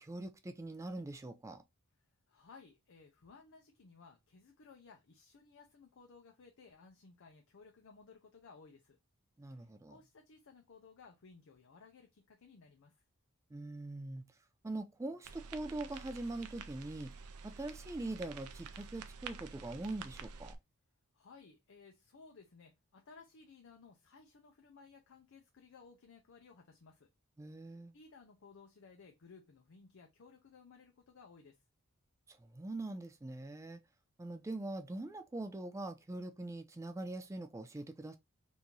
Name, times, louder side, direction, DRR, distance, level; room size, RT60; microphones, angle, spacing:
voice 1, 0.0-1.6 9.4-10.0 13.5-14.2 14.6-17.1 17.4-20.5 27.4-27.9 32.3-33.8 34.2-38.2, right 2 dB, 15° right, 0.3 m, -43 dB
voice 2, 2.3-9.0 9.5-13.0 21.1-27.1 27.6-31.6, left 4 dB, 60° left, 0.5 m, -59 dB
sound 1, 15.2-20.5, right 5 dB, 85° right, 0.5 m, -49 dB
3.0 x 2.6 x 3.6 m
head